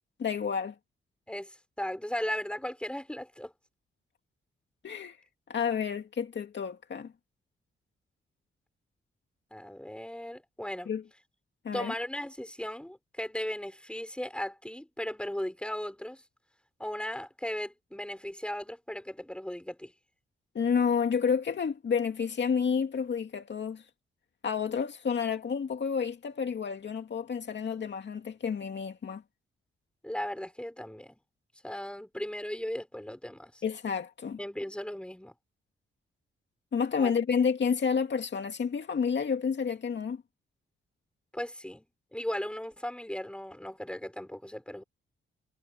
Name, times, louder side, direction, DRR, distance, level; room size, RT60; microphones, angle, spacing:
voice 1, 0.2-0.8 4.8-5.2 5.5-7.1 10.9-11.0 11.6-11.9 20.5-23.8 24.4-29.2 33.6-34.4 36.7-40.2, left 6 dB, 60° left, 2.3 m, -30 dB
voice 2, 1.3-3.5 9.5-10.9 11.7-16.2 16.8-19.9 30.0-31.2 31.6-33.6 34.4-35.3 37.0-37.1 41.3-41.9 42.1-44.8, left 1 dB, 5° left, 6.0 m, -37 dB
cardioid pair, 85°, 21 cm